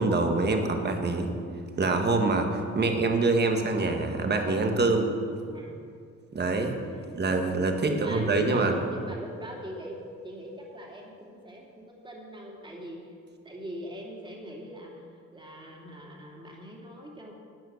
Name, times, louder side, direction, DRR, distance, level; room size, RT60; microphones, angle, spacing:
voice 1, 0.0-1.3 1.8-5.1 6.3-6.7 7.1-8.7, right 3 dB, 35° right, 4 dB, 1.6 m, -25 dB
voice 2, 5.4-5.8 6.9-7.3 7.8-13.1 13.4-15.0 15.3-17.3, right 1 dB, 15° right, -1 dB, 3.0 m, -40 dB
12.5 x 9.1 x 6.4 m, 2.3 s
cardioid pair, 90°, 30 cm